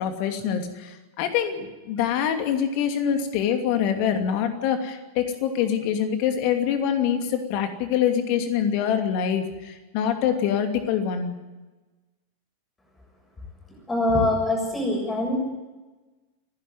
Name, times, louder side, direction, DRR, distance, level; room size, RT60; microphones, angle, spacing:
voice 1, 0.0-11.3, left 8 dB, 45° left, 6 dB, 2.7 m, -25 dB
voice 2, 13.9-15.4, left 2 dB, 15° left, 1 dB, 7.3 m, -23 dB
29.5 x 11.5 x 9.5 m, 1.2 s
figure-of-eight pair, 90°, 0 cm